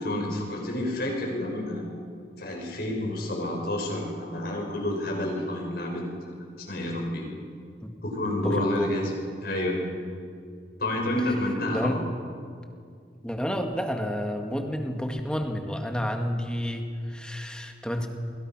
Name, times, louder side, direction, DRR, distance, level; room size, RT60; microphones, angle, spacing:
voice 1, 0.0-1.8 2.4-6.3 6.7-7.3 8.0-9.1 9.4-9.8 10.8-12.0, left 1 dB, 60° left, 0 dB, 6.8 m, -29 dB
voice 2, 8.4-8.9 11.7-12.0 13.2-18.1, equal, 5° left, 3 dB, 2.0 m, -30 dB
30.0 x 22.0 x 6.2 m, 2.2 s
head